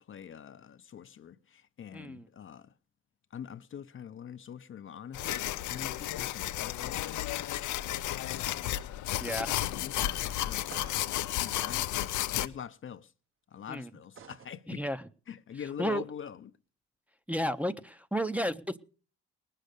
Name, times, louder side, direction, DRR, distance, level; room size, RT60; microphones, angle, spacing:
voice 1, 0.0-2.7 3.3-7.5 8.3-8.7 9.8-11.9 12.4-13.1 13.5-14.8 15.3-16.5, left 8 dB, 45° left, 0.6 m, -44 dB
voice 2, 1.9-2.3 9.2-9.6 13.7-13.9 14.7-15.0 15.8-16.0 17.3-18.8, equal, 5° right, 0.7 m, -32 dB
sound 1, 5.1-12.5, left 13 dB, 75° left, 0.7 m, -33 dB
sound 2, 10.6-11.2 14.1-14.5, right 6 dB, 45° right, 0.9 m, -50 dB
19.5 x 6.6 x 6.6 m
cardioid pair, 90°, 30 cm